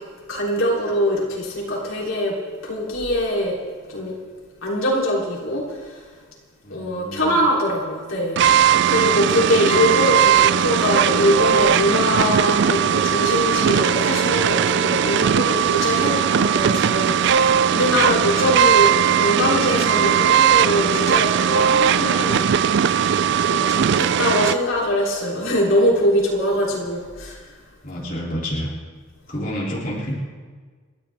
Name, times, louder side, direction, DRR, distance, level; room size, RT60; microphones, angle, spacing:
voice 1, 0.3-2.4 2.6-3.6 3.9-4.2 4.6-5.9 6.7-23.1 23.5-27.4, equal, 75° left, -4 dB, 3.6 m, -23 dB
voice 2, 6.6-7.4 10.6-10.8 15.4-15.6 17.9-18.5 23.6-24.1 26.7-26.8 27.8-28.7 29.3-30.1, equal, 40° left, -6 dB, 3.2 m, -31 dB
sound 1, 8.4-24.5, right 8 dB, 60° right, 0.4 m, -18 dB
29.5 x 12.0 x 3.6 m, 1.5 s
head